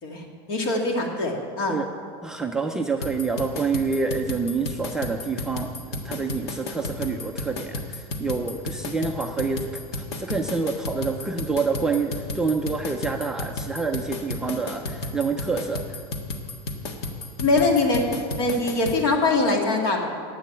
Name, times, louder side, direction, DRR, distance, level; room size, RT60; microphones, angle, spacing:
voice 1, 0.0-1.8 17.4-18.0 18.4-20.0, left 3 dB, 55° left, 1 dB, 2.2 m, -23 dB
voice 2, 2.2-16.0, right 4 dB, 5° right, 1 dB, 0.3 m, -27 dB
sound 1, 3.0-19.0, left 2 dB, 85° left, 1.6 m, -33 dB
11.0 x 8.3 x 8.8 m, 2.2 s
supercardioid pair, 175°, 14 cm